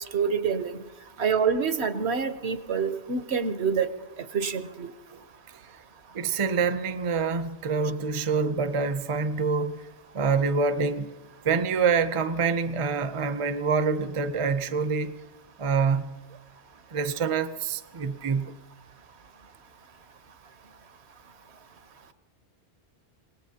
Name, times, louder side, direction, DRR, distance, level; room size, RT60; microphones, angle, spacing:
voice 1, 0.1-0.8 1.2-3.9 4.3-4.9, right 6 dB, 70° right, 1.1 m, -26 dB
voice 2, 6.1-9.8 10.1-11.1 11.4-15.1 15.6-16.1 16.9-18.5, right 5 dB, 35° right, 0.6 m, -26 dB
27.0 x 18.5 x 2.8 m
omnidirectional pair, 1.2 m